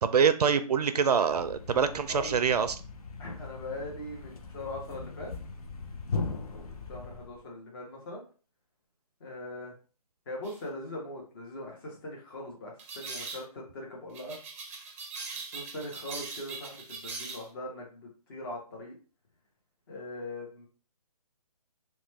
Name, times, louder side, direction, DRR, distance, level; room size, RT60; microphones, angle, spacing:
voice 1, 0.0-2.8, right 6 dB, 85° right, 11 dB, 0.4 m, -25 dB
Thump thud, 1.2-7.4, left 4 dB, 70° left, 0.5 m, -39 dB
voice 2, 2.1-2.4 3.2-5.3 6.5-8.2 9.2-9.7 10.3-14.4 15.5-18.9 19.9-20.7, left 1 dB, 35° left, -2 dB, 0.9 m, -41 dB
sound 1, 10.4-10.6 12.8-13.4 14.1-17.5, right 4 dB, 25° right, 0.5 m, -41 dB
2.9 x 2.2 x 3.1 m, 0.37 s
hypercardioid pair, 155°, 20 cm